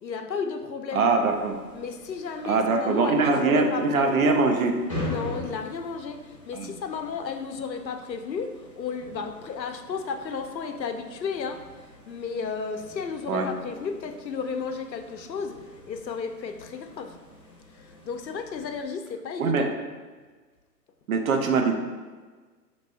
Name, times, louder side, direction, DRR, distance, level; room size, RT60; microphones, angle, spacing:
voice 1, 0.0-1.1 1.7-4.4 5.0-11.6 12.1-17.2 17.7-19.7, left 5 dB, 85° left, 7 dB, 0.6 m, -33 dB
voice 2, 0.9-1.6 2.4-4.8 6.5-6.7 13.3-13.5 19.4-19.6 21.1-21.7, right 4 dB, 55° right, 3 dB, 0.7 m, -22 dB
sound 1, 1.2-18.9, left 1 dB, 25° left, 0.3 m, -43 dB
5.2 x 3.0 x 2.7 m, 1.4 s
figure-of-eight pair, 120°, 50 cm